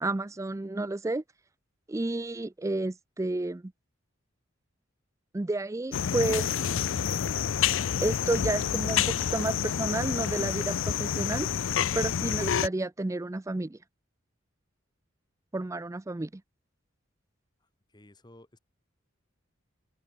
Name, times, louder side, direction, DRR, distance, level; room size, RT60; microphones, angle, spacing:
voice 1, 0.0-1.2 1.9-3.7 5.3-6.5 8.0-11.5 11.9-13.8 15.5-16.4, right 2 dB, 15° right, 0.4 m, -31 dB
sound 1, 5.9-12.7, left 8 dB, 70° left, 0.5 m, -28 dB
voice 2, 17.6-18.6, left 1 dB, 20° left, 2.0 m, -55 dB
open air
head